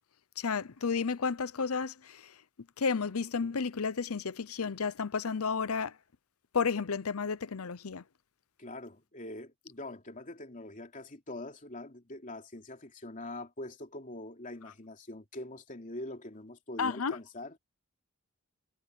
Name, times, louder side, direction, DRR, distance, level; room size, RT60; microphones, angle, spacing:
voice 1, 0.4-2.2 2.8-5.9 6.5-8.0 16.8-17.2, left 5 dB, 90° left, 0.7 m, -32 dB
voice 2, 8.6-17.6, left 1 dB, 40° left, 3.1 m, -43 dB
head